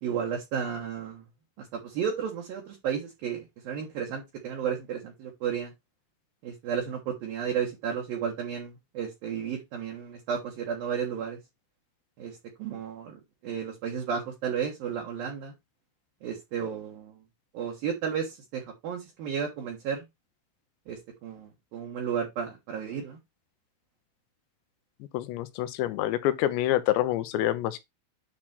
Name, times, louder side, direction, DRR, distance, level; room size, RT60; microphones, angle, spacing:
voice 1, 0.0-1.2 1.6-5.7 6.4-11.4 12.2-15.5 16.2-17.2 17.5-20.0 20.9-23.2, right 7 dB, 60° right, 2.7 m, -33 dB
voice 2, 25.1-27.8, left 13 dB, 80° left, 2.7 m, -27 dB
10.0 x 4.0 x 4.3 m
omnidirectional pair, 5.6 m